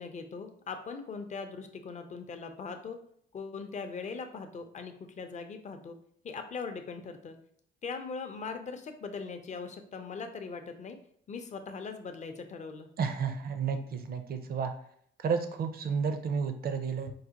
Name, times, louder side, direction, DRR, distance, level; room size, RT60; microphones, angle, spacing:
voice 1, 0.0-3.0 3.3-6.0 6.2-7.3 7.8-11.0 11.3-12.9, left 5 dB, 35° left, 6 dB, 0.5 m, -40 dB
voice 2, 13.0-14.7 15.2-17.1, right 6 dB, 50° right, 7 dB, 0.5 m, -31 dB
4.7 x 2.1 x 2.8 m, 0.64 s
cardioid pair, 90°, 20 cm